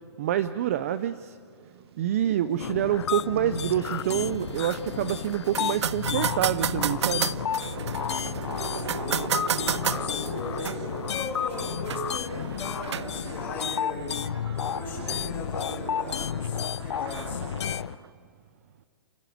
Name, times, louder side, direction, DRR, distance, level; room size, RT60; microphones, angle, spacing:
voice 1, 0.2-1.3 2.0-7.3, right 11 dB, 30° right, 13 dB, 0.5 m, -27 dB
voice 2, 2.4-2.7 8.7-9.3 9.8-14.1 14.5-17.6, left 3 dB, 15° left, -4 dB, 6.4 m, -38 dB
sound 1, 2.6-18.0, left 8 dB, 80° left, 0.6 m, -32 dB
sound 2, 3.0-3.1 3.4-4.1 4.6-4.7 4.9-18.1, right 7 dB, 65° right, 1.1 m, -41 dB
sound 3, 3.8-13.8, right 8 dB, 80° right, 0.6 m, -33 dB
28.0 x 15.0 x 7.8 m, 2.2 s
hypercardioid pair, 165°, 14 cm